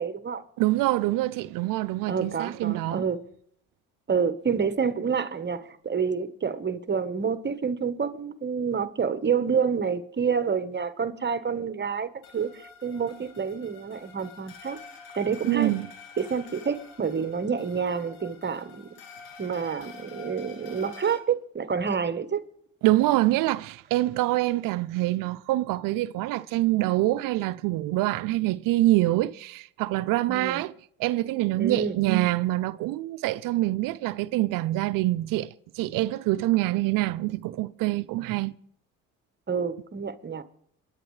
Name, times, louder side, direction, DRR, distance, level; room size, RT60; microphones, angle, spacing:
voice 1, 0.0-0.4 2.1-3.2 4.1-14.8 15.1-15.7 16.2-18.9 19.4-22.4 30.3-30.6 31.6-32.0 39.5-40.4, right 6 dB, 30° right, 1.1 m, -28 dB
voice 2, 0.6-3.0 15.5-15.9 22.8-30.7 31.0-35.5 35.8-38.5, right 17 dB, 70° right, 0.6 m, -25 dB
sound 1, 12.2-21.2, left 5 dB, 80° left, 2.3 m, -48 dB
28.0 x 10.5 x 3.2 m
supercardioid pair, 65°, 34 cm